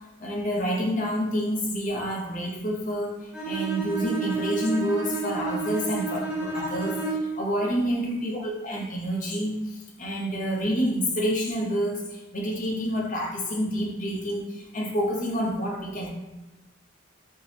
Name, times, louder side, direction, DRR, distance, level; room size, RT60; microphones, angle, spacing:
voice 1, 0.2-16.1, equal, 40° left, -2 dB, 0.9 m, -28 dB
Bowed string instrument, 3.3-7.4, right 4 dB, 5° right, 0.9 m, -30 dB
4.5 x 3.1 x 3.4 m, 1.1 s
head